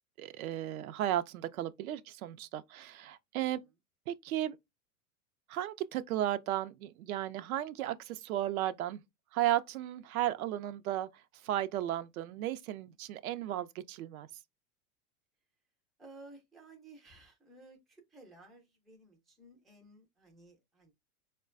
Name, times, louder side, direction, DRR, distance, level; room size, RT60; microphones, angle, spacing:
voice 1, 0.2-3.6 4.1-4.6 5.5-9.0 9.3-14.3, right 13 dB, 75° right, 0.5 m, -34 dB
voice 2, 3.4-3.7 16.0-20.9, right 2 dB, ahead, 0.3 m, -56 dB
4.3 x 2.2 x 2.4 m
hypercardioid pair, 110°, 44 cm